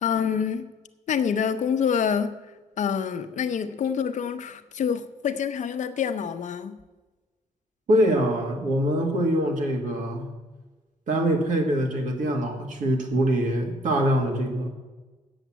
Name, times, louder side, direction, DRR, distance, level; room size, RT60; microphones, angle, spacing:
voice 1, 0.0-0.7 1.1-2.4 2.8-6.8, left 7 dB, 65° left, 9 dB, 0.7 m, -26 dB
voice 2, 7.9-10.3 11.1-14.7, right 1 dB, 80° right, 3 dB, 1.9 m, -24 dB
9.2 x 8.0 x 7.4 m, 1.2 s
wide cardioid pair, 175°, 13 cm